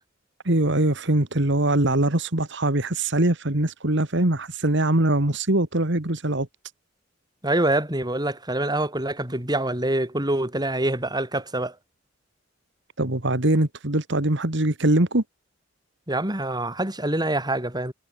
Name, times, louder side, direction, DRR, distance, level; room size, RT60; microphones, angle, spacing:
voice 1, 0.4-6.5 13.0-15.2, right 1 dB, 65° right, 2.4 m, -22 dB
voice 2, 7.4-11.7 16.1-17.9, right 1 dB, 20° right, 6.1 m, -25 dB
head